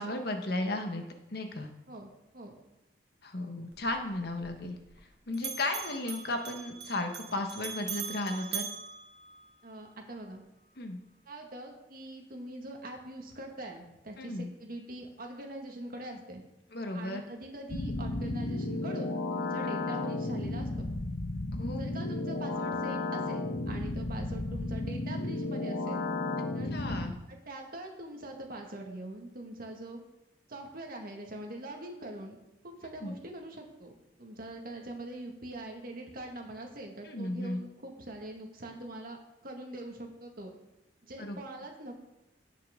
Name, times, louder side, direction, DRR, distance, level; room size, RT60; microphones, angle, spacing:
voice 1, 0.0-1.7 3.2-4.8 5.3-8.6 10.8-11.0 14.2-14.5 16.7-17.2 21.6-21.8 26.7-27.1 33.0-33.1 37.0-37.6 41.2-41.4, left 2 dB, 60° left, 5 dB, 1.3 m, -34 dB
voice 2, 1.9-2.5 9.6-10.4 11.3-16.4 16.9-20.7 21.8-26.1 26.5-26.7 27.3-30.0 30.5-32.4 32.6-33.9 34.2-39.2 39.4-40.5 41.0-42.0, right 1 dB, 55° right, 2 dB, 1.8 m, -43 dB
Bell, 3.7-5.1 5.3-9.8, right 7 dB, 70° right, 1.3 m, -41 dB
sound 1, 17.7-27.1, left 2 dB, 85° left, 1.1 m, -33 dB
17.0 x 5.8 x 3.7 m, 0.92 s
head